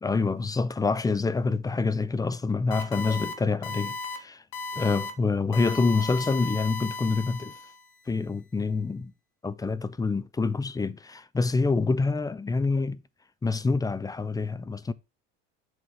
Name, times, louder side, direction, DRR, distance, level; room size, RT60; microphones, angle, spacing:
voice 1, 0.0-4.4 4.7-7.5 8.1-9.1 9.4-13.0 13.4-14.9, left 4 dB, 10° left, 0.4 m, -26 dB
sound 1, 2.7-3.3 3.6-4.2 4.5-5.1 5.5-7.8, left 3 dB, 75° left, 1.4 m, -35 dB
7.8 x 3.1 x 5.6 m
supercardioid pair, 105°, 33 cm